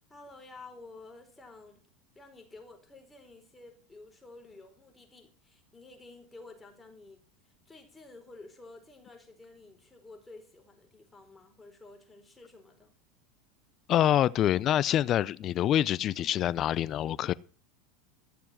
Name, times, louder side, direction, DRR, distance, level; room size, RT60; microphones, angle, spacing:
voice 1, 0.1-1.8 2.1-7.2 7.7-12.9, left 3 dB, 15° left, 4.5 m, -51 dB
voice 2, 13.9-17.3, left 11 dB, 45° left, 0.6 m, -26 dB
13.5 x 7.0 x 7.7 m
hypercardioid pair, 95°, 0 cm